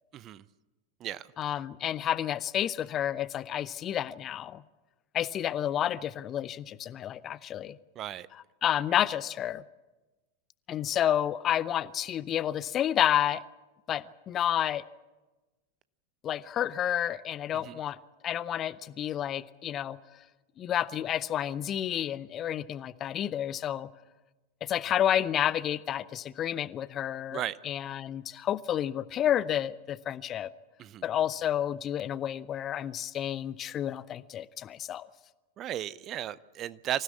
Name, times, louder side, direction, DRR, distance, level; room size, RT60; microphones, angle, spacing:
voice 1, 0.1-0.4 1.0-1.3 8.0-8.3 17.5-17.8 27.3-27.6 30.8-31.0 35.6-37.0, right 12 dB, 30° right, 19 dB, 0.7 m, -35 dB
voice 2, 1.4-4.6 5.1-7.8 8.3-9.6 10.7-13.4 13.9-14.8 16.2-18.0 18.2-20.0 20.6-23.9 24.6-30.5 31.0-35.1, left 10 dB, 30° left, 18 dB, 0.7 m, -30 dB
25.5 x 16.0 x 8.5 m, 1.1 s
figure-of-eight pair, 90°, 0 cm